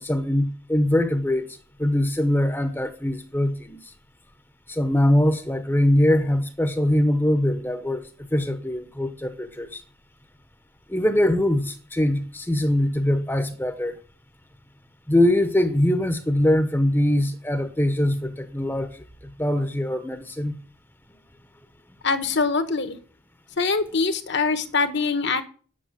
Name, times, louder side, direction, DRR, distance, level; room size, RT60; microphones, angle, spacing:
voice 1, 0.0-1.5 1.8-3.9 4.7-8.0 8.3-9.8 10.9-14.0 15.1-20.6, left 1 dB, 10° left, 0.9 m, -22 dB
voice 2, 22.0-23.0 23.6-25.4, left 4 dB, 50° left, 1.2 m, -23 dB
10.0 x 6.8 x 7.4 m
head